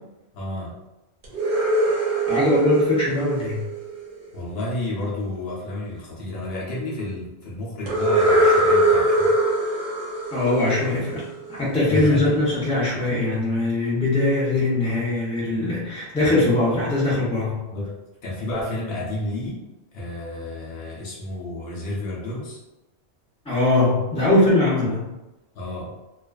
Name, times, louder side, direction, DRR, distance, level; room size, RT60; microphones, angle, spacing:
voice 1, 0.3-0.8 4.3-9.4 11.8-12.3 17.7-17.9 18.2-19.6 19.9-22.6 25.5-25.9, left 1 dB, 70° left, -5 dB, 0.9 m, -31 dB
sound 1, 1.2-4.2 7.9-11.6, right 1 dB, 60° right, 0.7 m, -22 dB
voice 2, 2.3-3.6 10.3-11.2 11.5-17.6 23.5-25.1, left 2 dB, 5° left, -8 dB, 0.6 m, -21 dB
2.4 x 2.3 x 2.3 m, 1.0 s
omnidirectional pair, 1.1 m